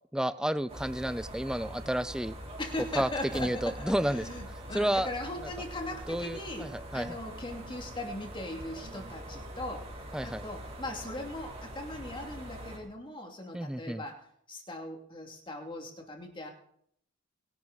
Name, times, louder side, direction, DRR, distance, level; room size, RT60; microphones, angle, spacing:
voice 1, 0.1-2.4 3.0-3.1 3.3-4.2 4.7-5.1 6.1-7.1 10.1-10.4 13.5-14.0, right 1 dB, 5° right, 14 dB, 0.4 m, -31 dB
sound 1, 0.7-12.8, equal, 30° right, 3.6 m, -43 dB
voice 2, 2.6-9.9 10.2-16.5, left 1 dB, 25° left, 2 dB, 2.5 m, -39 dB
21.5 x 11.0 x 4.1 m, 0.68 s
head